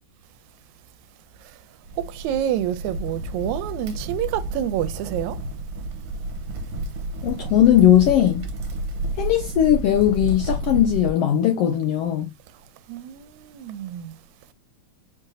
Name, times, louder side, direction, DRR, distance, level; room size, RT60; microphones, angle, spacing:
Crackle, 1.9-11.1, right 1 dB, 55° right, 1.9 m, -31 dB
voice 1, 2.0-5.4 12.9-14.2, right 11 dB, 85° right, 1.9 m, -28 dB
voice 2, 7.2-8.4 9.1-12.3, left 11 dB, 80° left, 1.3 m, -18 dB
5.1 x 2.7 x 3.8 m
omnidirectional pair, 3.3 m